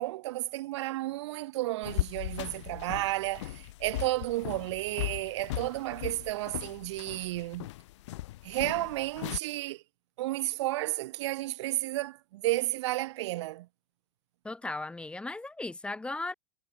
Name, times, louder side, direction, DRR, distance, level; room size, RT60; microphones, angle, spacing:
voice 1, 0.0-7.7 8.4-9.8 10.2-13.7, right 17 dB, 70° right, 0.7 m, -32 dB
sound 1, 1.8-9.4, left 16 dB, 75° left, 0.6 m, -38 dB
voice 2, 14.4-16.3, left 2 dB, 5° left, 1.1 m, -36 dB
supercardioid pair, 135°, 15 cm